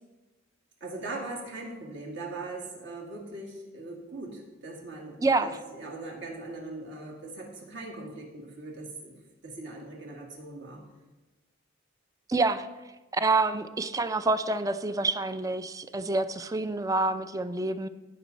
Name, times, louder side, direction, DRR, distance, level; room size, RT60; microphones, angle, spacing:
voice 1, 0.8-10.8, right 2 dB, 60° right, -1 dB, 2.2 m, -40 dB
voice 2, 12.3-12.7 13.1-17.9, right 3 dB, 15° right, 11 dB, 0.4 m, -27 dB
15.5 x 6.1 x 4.1 m, 1.1 s
head